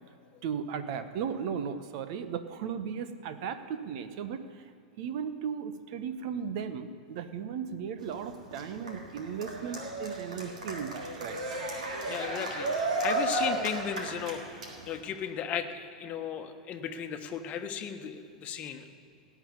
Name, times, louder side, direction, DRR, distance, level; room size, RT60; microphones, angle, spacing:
voice 1, 0.4-4.7 5.0-11.4, right 7 dB, 50° right, 10 dB, 1.1 m, -36 dB
Cheering, 8.0-15.0, right 2 dB, 70° right, 3.1 m, -34 dB
voice 2, 12.1-18.9, left 8 dB, 35° left, 6 dB, 1.3 m, -36 dB
17.5 x 6.2 x 9.7 m, 2.6 s
figure-of-eight pair, 95°, 4 cm